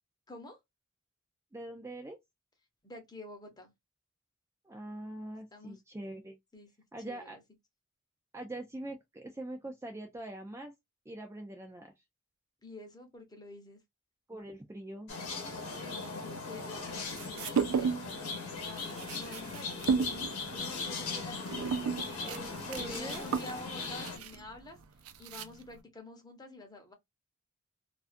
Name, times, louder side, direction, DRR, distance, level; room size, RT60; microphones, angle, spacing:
voice 1, 0.3-0.6 2.8-3.7 5.5-5.8 6.5-6.7 7.0-7.4 12.6-13.8 15.8-22.2 22.8-24.8 25.2-26.9, left 2 dB, 20° left, 0.7 m, -48 dB
voice 2, 1.5-2.2 4.6-6.4 6.9-7.4 8.3-10.7 11.1-11.9 14.3-15.1 22.2-23.3, right 1 dB, 15° right, 0.3 m, -43 dB
sound 1, 15.1-24.2, left 4 dB, 90° left, 0.9 m, -39 dB
sound 2, 16.9-18.2 18.5-25.8, right 6 dB, 85° right, 0.4 m, -34 dB
2.4 x 2.3 x 2.4 m
head